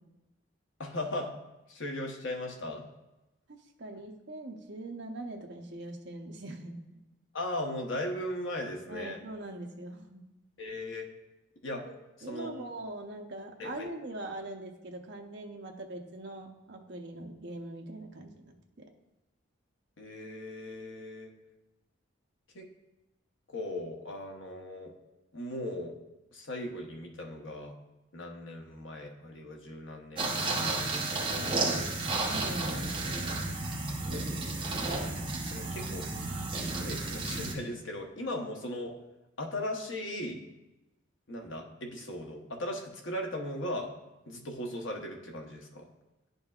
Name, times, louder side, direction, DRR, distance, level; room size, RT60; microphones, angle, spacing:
voice 1, 0.8-1.3 1.7-2.8 7.3-9.2 10.6-11.1 11.6-11.8 12.3-12.7 13.6-13.9 20.0-21.3 22.5-22.7 23.5-24.9 25.3-26.0 26.3-27.7 28.1-31.8 34.0-34.3 35.4-36.1 36.5-38.9 39.4-40.4 41.3-43.9 44.3-45.9, left 1 dB, 75° left, 2 dB, 0.9 m, -38 dB
voice 2, 3.8-7.0 8.9-10.2 12.2-18.5 32.3-32.7, right 2 dB, 55° right, 2 dB, 0.7 m, -42 dB
sound 1, 30.2-37.5, right 2 dB, 25° right, 0.9 m, -32 dB
10.5 x 5.3 x 2.4 m, 0.99 s
head